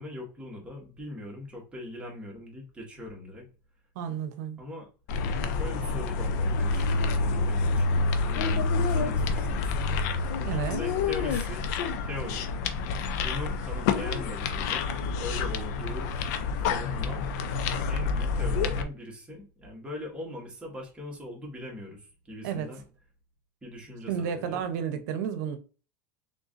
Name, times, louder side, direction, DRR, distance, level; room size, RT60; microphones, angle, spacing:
voice 1, 0.0-3.4 4.6-4.9 5.6-7.9 8.3-10.0 10.3-11.6 12.0-12.4 13.2-16.1 16.7-17.3 17.9-22.8 23.6-24.7, left 1 dB, 10° right, 1.7 m, -41 dB
voice 2, 4.0-4.6 10.5-10.8 22.4-22.7 24.1-25.6, right 8 dB, 75° right, 0.8 m, -31 dB
sound 1, 5.1-18.8, left 4 dB, 70° left, 0.6 m, -28 dB
3.7 x 3.7 x 2.6 m
supercardioid pair, 130°, 9 cm